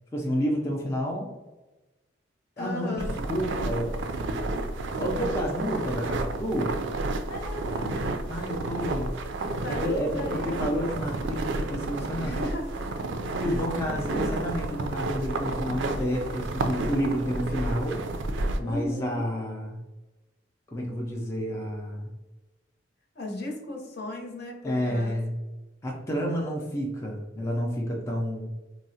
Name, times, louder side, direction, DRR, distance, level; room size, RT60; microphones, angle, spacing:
voice 1, 0.1-1.3 2.6-4.0 4.9-6.8 8.3-9.1 9.7-12.3 13.4-18.0 18.6-19.8 20.7-22.1 24.6-25.4 25.8-28.5, equal, 15° left, -2 dB, 0.4 m, -30 dB
voice 2, 2.6-3.2 7.3-8.1 9.4-10.7 12.2-13.0 13.4-14.5 18.6-19.3 23.1-25.2, left 2 dB, 60° left, 0 dB, 0.8 m, -36 dB
sound 1, 3.0-18.6, right 2 dB, 75° right, 0.4 m, -31 dB
3.7 x 2.0 x 2.6 m, 1.1 s
head